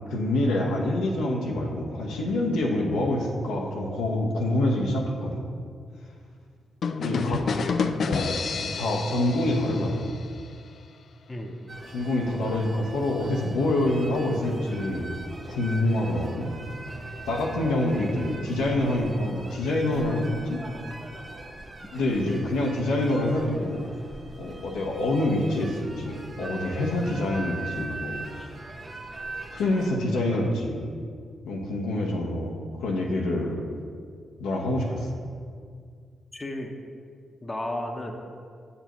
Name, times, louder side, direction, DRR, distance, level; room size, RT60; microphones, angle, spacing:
voice 1, 0.1-5.4 7.0-7.4 8.0-10.1 11.9-15.1 15.5-16.5 17.3-20.6 21.9-23.9 24.4-28.5 29.5-30.8 31.4-33.6 34.4-35.1, left 1 dB, 80° left, -1 dB, 0.9 m, -26 dB
sound 1, 6.8-10.5, left 5 dB, 65° left, 0.3 m, -29 dB
voice 2, 7.0-7.8 11.3-11.6 17.9-18.6 22.0-22.5 36.3-36.7 37.4-38.1, left 1 dB, 25° left, 3 dB, 0.9 m, -35 dB
sound 2, 11.7-29.9, right 2 dB, 35° right, 1.0 m, -41 dB
7.8 x 6.9 x 3.0 m, 2.1 s
hypercardioid pair, 40°, 0 cm